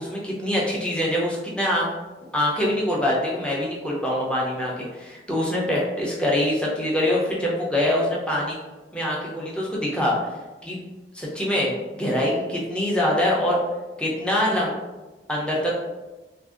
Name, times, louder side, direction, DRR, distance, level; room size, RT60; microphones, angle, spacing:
voice 1, 0.0-1.9 2.3-8.6 8.9-10.2 10.6-10.8 11.1-13.6 14.0-14.7 15.3-15.7, left 1 dB, 5° left, -4 dB, 0.5 m, -24 dB
3.2 x 2.6 x 2.4 m, 1.2 s
head